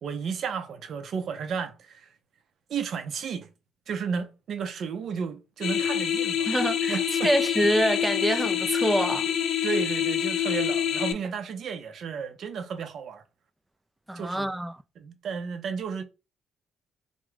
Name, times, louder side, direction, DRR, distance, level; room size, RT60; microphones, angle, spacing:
voice 1, 0.0-2.1 2.7-3.5 3.9-6.5 6.9-7.3 9.3-9.4 9.6-13.2 14.2-14.5 15.0-16.0, right 6 dB, 65° right, 0.5 m, -33 dB
sound 1, 5.6-11.1, left 9 dB, 70° left, 0.4 m, -26 dB
voice 2, 6.5-9.3 14.1-14.7, right 1 dB, 10° right, 0.3 m, -26 dB
3.6 x 2.0 x 3.1 m
cardioid pair, 90°, 0 cm